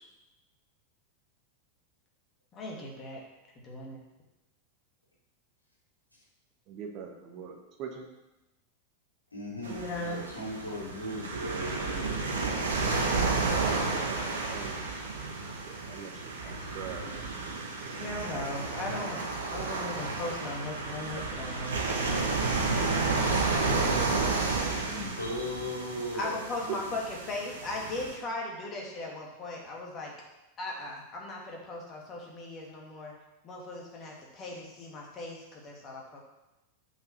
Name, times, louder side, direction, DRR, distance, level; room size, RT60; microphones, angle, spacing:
voice 1, 2.5-3.2 3.6-4.0 9.7-10.2 16.4-16.8 17.9-19.2 19.5-22.3 26.1-30.1 30.6-33.1 33.4-36.2, left 2 dB, 30° left, -1 dB, 2.6 m, -38 dB
voice 2, 6.7-8.0 12.6-14.7 15.3-16.2 16.5-17.1 23.8-24.4 26.2-26.4, right 6 dB, 40° right, 2 dB, 1.5 m, -43 dB
voice 3, 9.3-9.7 10.0-12.1 24.8-26.3, left 1 dB, 85° left, -5 dB, 3.2 m, -37 dB
sound 1, 9.6-28.1, right 3 dB, 70° right, 1.5 m, -31 dB
8.2 x 5.8 x 6.3 m, 0.99 s
figure-of-eight pair, 90°, 0 cm